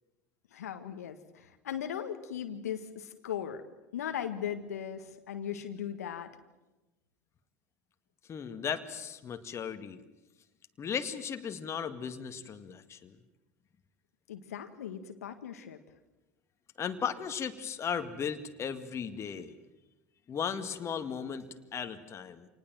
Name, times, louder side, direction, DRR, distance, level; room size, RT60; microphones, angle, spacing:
voice 1, 0.5-3.6 3.9-6.3 14.3-15.8, left 9 dB, 80° left, 8 dB, 1.6 m, -38 dB
voice 2, 8.3-10.0 10.8-13.1 16.8-19.5 20.3-22.5, left 7 dB, 35° left, 7 dB, 2.0 m, -36 dB
26.5 x 19.5 x 7.6 m, 1.0 s
hypercardioid pair, 80°, 8 cm